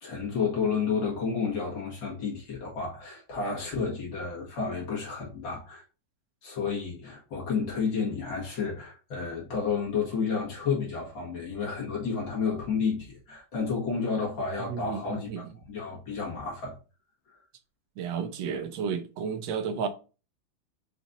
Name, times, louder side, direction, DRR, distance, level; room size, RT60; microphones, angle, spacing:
voice 1, 0.0-5.8 6.4-16.8, left 5 dB, 75° left, 2.2 m, -31 dB
voice 2, 14.7-15.4 18.0-19.9, right 6 dB, 70° right, 1.2 m, -32 dB
5.1 x 2.4 x 3.9 m
omnidirectional pair, 2.1 m